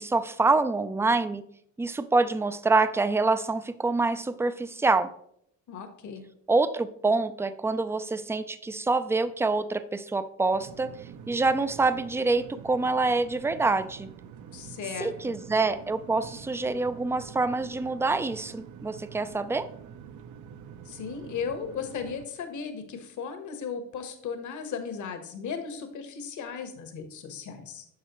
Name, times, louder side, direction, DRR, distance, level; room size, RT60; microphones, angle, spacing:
voice 1, 0.0-1.4 1.8-5.1 6.5-10.9 11.3-14.1 15.0-19.7, right 3 dB, 5° right, 12 dB, 0.4 m, -26 dB
voice 2, 5.7-6.2 14.5-15.4 20.8-27.8, left 6 dB, 55° left, 7 dB, 1.3 m, -36 dB
sound 1, 10.5-22.3, right 8 dB, 55° right, 0.7 m, -46 dB
10.0 x 6.1 x 3.1 m, 0.71 s
supercardioid pair, 85°, 36 cm